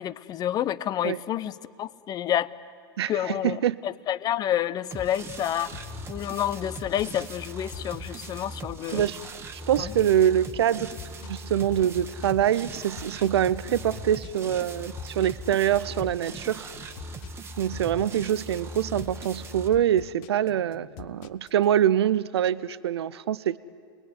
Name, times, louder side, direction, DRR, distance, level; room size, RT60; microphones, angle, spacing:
voice 1, 0.0-2.5 3.1-5.7 6.1-9.1 9.8-9.9, left 11 dB, 30° left, 17 dB, 0.7 m, -29 dB
voice 2, 3.0-3.8 8.9-9.2 9.5-10.9 11.2-16.7 17.6-23.6, right 10 dB, 85° right, 17 dB, 0.6 m, -25 dB
sound 1, 4.9-19.7, right 2 dB, 20° right, 1.5 m, -40 dB
sound 2, 5.7-21.6, left 12 dB, 55° left, 1.1 m, -45 dB
29.5 x 21.0 x 9.6 m, 2.4 s
hypercardioid pair, 125°, 13 cm